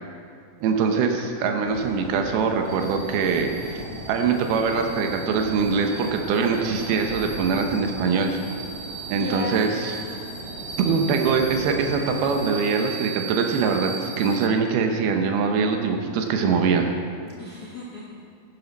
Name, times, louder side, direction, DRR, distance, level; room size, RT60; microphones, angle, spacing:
voice 1, 0.6-3.8 4.1-8.4 9.1-9.9 10.8-16.9, right 5 dB, 85° right, 4 dB, 2.9 m, -23 dB
sound 1, 1.6-12.4, right 1 dB, 50° right, 2.8 m, -38 dB
sound 2, 2.7-14.5, right 4 dB, 70° right, 2.9 m, -38 dB
voice 2, 9.2-10.7 17.4-18.2, left 2 dB, 90° left, -7 dB, 0.8 m, -37 dB
16.0 x 10.5 x 4.1 m, 2.3 s
omnidirectional pair, 4.3 m